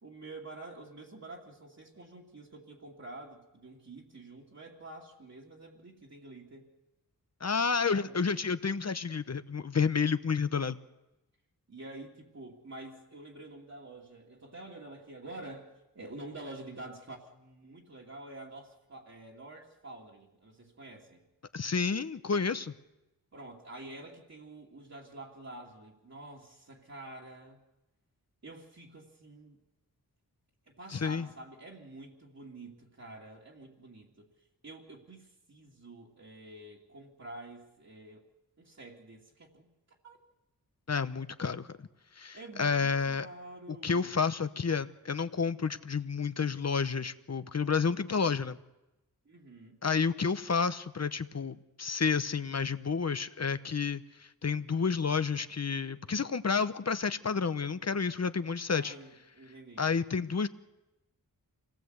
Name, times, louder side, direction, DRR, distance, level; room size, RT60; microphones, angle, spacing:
voice 1, 0.0-6.7 7.9-8.2 11.7-21.2 23.3-27.6 28.4-29.6 30.7-34.3 34.6-38.2 38.6-39.7 40.0-40.2 42.3-44.1 49.2-49.8 58.7-59.9, right 2 dB, 45° right, -3 dB, 2.7 m, -48 dB
voice 2, 7.4-10.8 21.5-22.7 30.9-31.3 40.9-41.7 42.2-43.3 43.7-48.6 49.8-54.0 54.4-58.9 59.8-60.5, left 5 dB, 45° left, 12 dB, 1.0 m, -30 dB
27.5 x 18.5 x 8.1 m, 0.97 s
wide cardioid pair, 115°, 36 cm